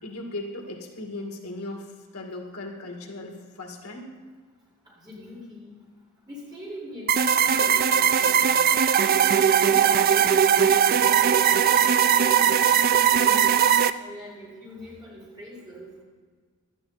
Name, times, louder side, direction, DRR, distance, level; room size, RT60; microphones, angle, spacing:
voice 1, 0.0-4.2, left 2 dB, 80° left, 2 dB, 2.0 m, -37 dB
voice 2, 5.0-5.8 6.3-8.6 9.7-11.9 12.6-13.5 14.0-15.9, left 1 dB, 20° right, -8 dB, 5.0 m, -42 dB
sound 1, 7.1-13.9, right 8 dB, 40° right, 0.4 m, -19 dB
16.5 x 12.0 x 4.2 m, 1.5 s
head